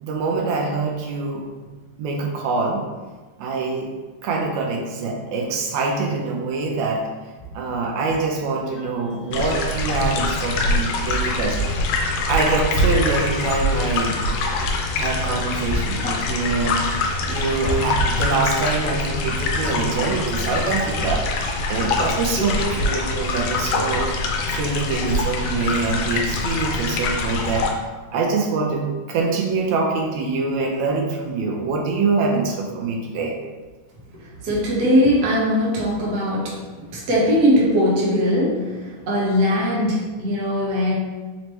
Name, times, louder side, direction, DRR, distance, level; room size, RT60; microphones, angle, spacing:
voice 1, 0.0-1.5 2.0-2.8 3.4-3.9 4.2-7.0 7.5-11.6 12.3-14.2 14.9-24.1 24.5-27.7 28.1-33.3, right 3 dB, 80° right, 0 dB, 1.8 m, -24 dB
sound 1, 9.3-27.7, left 2 dB, 80° left, 1.7 m, -24 dB
voice 2, 34.1-36.6 36.9-40.9, equal, 65° right, -6 dB, 0.9 m, -20 dB
5.1 x 3.1 x 3.0 m, 1.3 s
omnidirectional pair, 3.3 m